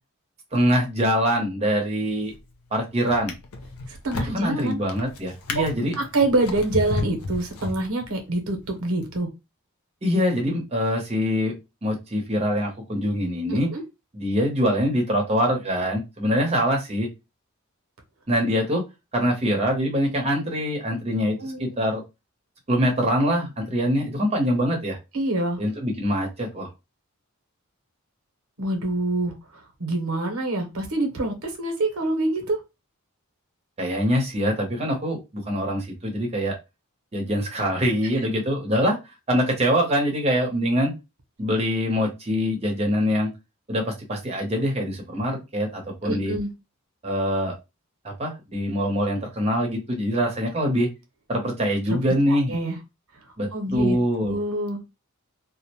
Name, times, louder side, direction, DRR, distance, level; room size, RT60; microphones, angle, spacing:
voice 1, 0.5-2.3 2.7-3.3 4.3-5.9 10.0-11.6 11.8-13.7 14.1-17.1 18.3-18.8 19.1-22.0 22.7-25.0 25.6-26.7 33.8-36.5 37.1-40.9 41.4-43.3 43.7-46.3 47.0-47.5 48.0-50.9 51.3-52.5 53.4-54.4, equal, 30° right, 1 dB, 0.8 m, -24 dB
Drawer open or close, 2.1-2.5 3.1-8.3 9.0-9.1, left 3 dB, 90° left, 0.5 m, -33 dB
voice 2, 3.9-4.8 5.5-5.6 6.0-9.3 13.7-13.8 21.4-21.6 25.1-25.6 28.6-32.6 46.0-46.5 51.9-52.0 52.3-52.8 53.5-54.0 54.2-54.8, right 2 dB, 75° right, 4 dB, 0.8 m, -26 dB
2.4 x 2.1 x 2.8 m, 0.24 s
head